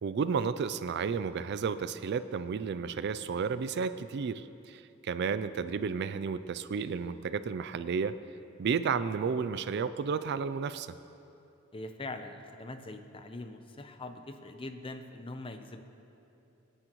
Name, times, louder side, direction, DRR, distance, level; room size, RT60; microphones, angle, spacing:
voice 1, 0.0-8.1 8.6-10.9, right 6 dB, 55° right, 13 dB, 0.4 m, -32 dB
voice 2, 11.7-15.8, left 2 dB, 25° left, 7 dB, 0.7 m, -42 dB
24.5 x 9.9 x 3.1 m, 2.8 s
head